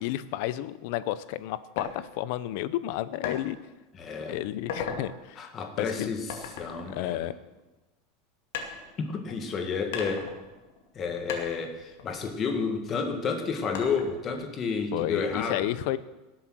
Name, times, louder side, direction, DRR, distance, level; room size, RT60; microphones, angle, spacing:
voice 1, 0.0-3.6 4.3-5.4 5.8-6.2 6.9-7.3 14.9-16.0, left 14 dB, 55° left, 16 dB, 0.6 m, -31 dB
sound 1, 1.8-1.9 3.2-3.4 3.9-4.2 4.6-5.0 6.3-7.8 8.5-9.4 9.9-11.0 11.3-12.9 13.7-14.3, left 6 dB, 70° left, 2.3 m, -38 dB
voice 2, 4.0-4.4 5.0-5.1 5.4-6.3 6.6-7.3 9.0-10.3 10.9-15.7, left 5 dB, 25° left, 5 dB, 1.5 m, -31 dB
18.0 x 8.0 x 6.2 m, 1.1 s
supercardioid pair, 165°, 0 cm